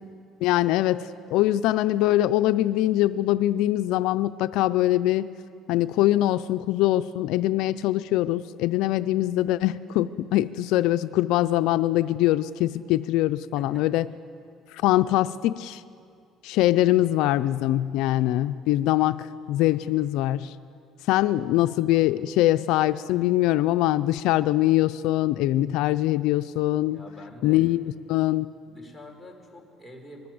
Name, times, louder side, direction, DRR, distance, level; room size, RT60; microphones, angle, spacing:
voice 1, 0.4-5.3 5.7-14.1 14.7-15.8 16.4-20.6 21.1-27.0 27.4-27.8 28.1-28.5, left 15 dB, 80° left, 12 dB, 0.5 m, -23 dB
voice 2, 13.6-13.9 21.2-21.4 26.9-27.8 28.6-30.3, left 1 dB, 5° left, 0 dB, 4.9 m, -46 dB
25.5 x 21.0 x 7.8 m, 2.4 s
cardioid pair, 110°, 0 cm